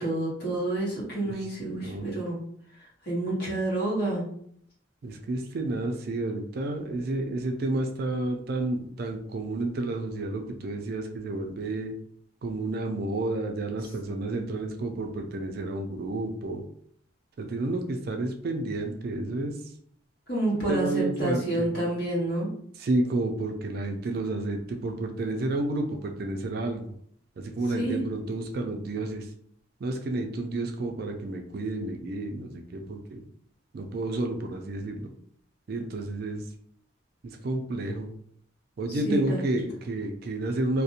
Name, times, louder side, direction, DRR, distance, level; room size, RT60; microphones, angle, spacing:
voice 1, 0.0-2.4 3.0-4.2 20.3-22.5 27.7-28.0 38.9-39.4, right 2 dB, 55° left, -5 dB, 1.1 m, -28 dB
voice 2, 1.2-2.1 5.0-11.9 12.4-16.6 17.4-19.5 20.5-21.7 22.8-26.8 27.4-29.3 29.8-33.2 33.7-35.1 35.7-36.4 37.2-38.1 38.8-40.8, right 2 dB, 50° right, 4 dB, 0.3 m, -30 dB
2.5 x 2.0 x 2.7 m, 0.65 s
head